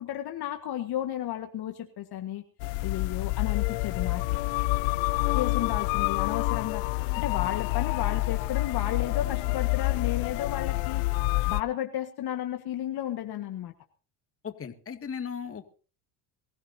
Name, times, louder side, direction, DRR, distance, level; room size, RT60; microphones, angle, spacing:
voice 1, 0.0-2.4 2.8-4.4 5.3-6.8 7.2-11.1 11.5-13.7, left 11 dB, 50° left, 5 dB, 1.7 m, -33 dB
sound 1, 2.6-11.6, left 23 dB, 70° left, 0.6 m, -28 dB
voice 2, 14.4-15.7, left 7 dB, 25° left, 6 dB, 2.2 m, -37 dB
23.0 x 15.0 x 2.8 m, 0.37 s
supercardioid pair, 100°, 48 cm